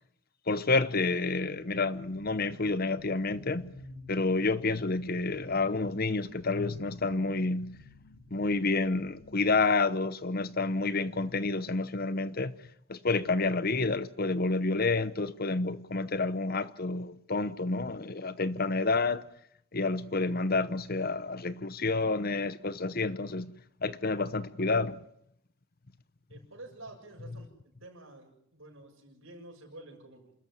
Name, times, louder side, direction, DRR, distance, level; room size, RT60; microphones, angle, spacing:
voice 1, 0.5-3.8 4.1-7.8 8.3-12.6 12.9-19.3 19.7-23.5 23.8-25.0 27.2-27.5, left 3 dB, 45° left, 0.9 m, -29 dB
sound 1, 1.2-9.4, left 2 dB, 90° left, 3.2 m, -51 dB
voice 2, 26.3-27.5 27.8-30.3, right 2 dB, 65° right, 7.2 m, -49 dB
28.0 x 13.5 x 9.3 m
head